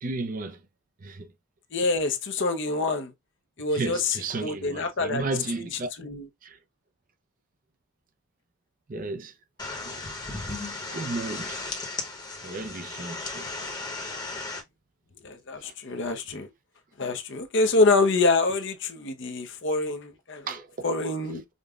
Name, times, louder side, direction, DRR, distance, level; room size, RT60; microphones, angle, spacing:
voice 1, 0.0-0.6 1.0-1.3 3.7-5.9 6.4-6.6 8.9-9.3 10.4-11.7 12.4-13.5 20.5-20.7 21.3-21.4, right 3 dB, 40° right, 0.5 m, -34 dB
voice 2, 1.7-3.1 3.6-5.3 6.0-6.3 15.2-16.5 17.0-20.5 20.8-21.4, left 3 dB, 55° left, 0.7 m, -26 dB
sound 1, 9.6-14.6, left 3 dB, 20° left, 1.0 m, -35 dB
5.1 x 2.2 x 2.4 m
head